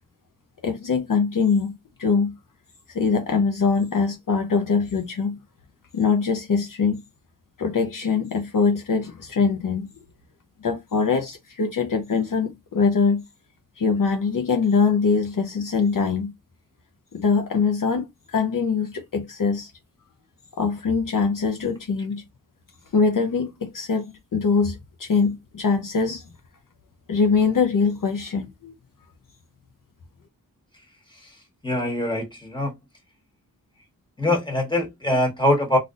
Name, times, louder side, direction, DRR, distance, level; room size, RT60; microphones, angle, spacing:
voice 1, 0.6-2.3 2.9-5.4 5.9-7.0 7.6-9.9 10.6-13.2 13.8-16.3 17.1-19.7 20.6-22.2 22.9-26.2 27.1-28.7, left 5 dB, 60° left, 0.7 m, -23 dB
voice 2, 31.1-32.7 34.2-35.8, left 1 dB, 10° left, 1.4 m, -23 dB
3.9 x 2.5 x 2.4 m
wide cardioid pair, 80°, 37 cm